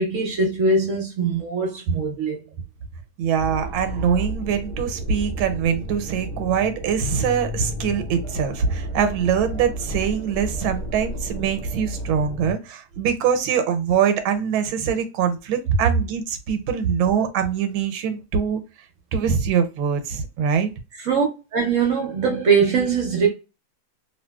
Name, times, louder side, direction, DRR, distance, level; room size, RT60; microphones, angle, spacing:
voice 1, 0.0-2.4 20.9-21.2 21.5-23.3, right 4 dB, 65° right, 0.7 m, -21 dB
voice 2, 3.2-18.6 19.1-20.7, right 7 dB, 90° right, 1.4 m, -23 dB
sound 1, 3.4-12.5, equal, 40° right, 0.3 m, -32 dB
3.0 x 2.7 x 2.2 m
omnidirectional pair, 2.2 m